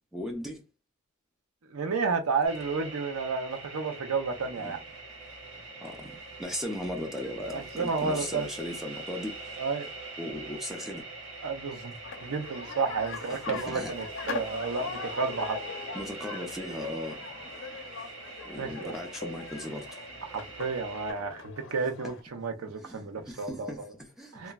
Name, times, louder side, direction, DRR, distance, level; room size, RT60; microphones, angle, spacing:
voice 1, 0.1-0.6 4.5-4.7 5.8-9.3 10.2-11.0 13.5-13.9 15.9-17.2 18.4-20.0 22.5-24.5, left 1 dB, ahead, 0.6 m, -37 dB
voice 2, 1.7-4.8 7.5-8.5 9.6-9.9 11.4-11.9 12.2-15.6 18.6-18.9 20.3-23.7 24.3-24.5, right 4 dB, 85° right, 0.6 m, -31 dB
sound 1, 2.4-21.1, right 3 dB, 60° right, 1.2 m, -43 dB
sound 2, 12.0-22.2, left 5 dB, 60° left, 0.6 m, -41 dB
3.0 x 2.3 x 2.3 m
head